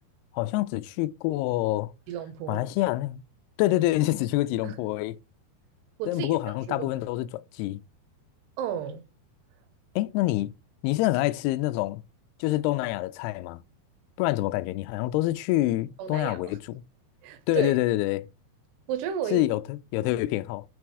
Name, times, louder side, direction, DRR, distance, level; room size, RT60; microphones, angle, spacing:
voice 1, 0.3-1.9 2.5-3.2 3.6-5.1 6.1-7.8 10.0-10.5 10.8-12.0 12.4-13.6 14.2-16.6 17.5-18.3 19.3-20.6, left 16 dB, 80° left, 2.4 m, -26 dB
voice 2, 2.1-2.6 4.6-4.8 6.0-6.4 6.7-6.9 8.6-9.0 16.0-16.6 17.2-17.8 18.9-19.4, right 9 dB, 80° right, 3.0 m, -33 dB
6.1 x 4.5 x 4.7 m
omnidirectional pair, 4.9 m